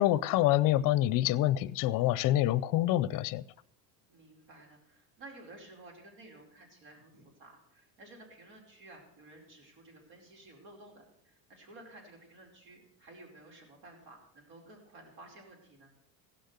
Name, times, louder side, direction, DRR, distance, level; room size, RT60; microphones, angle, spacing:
voice 1, 0.0-3.4, left 14 dB, 45° left, 0.6 m, -26 dB
voice 2, 4.1-15.9, right 2 dB, 75° right, 5.1 m, -54 dB
16.0 x 6.6 x 8.1 m
supercardioid pair, 130°, 47 cm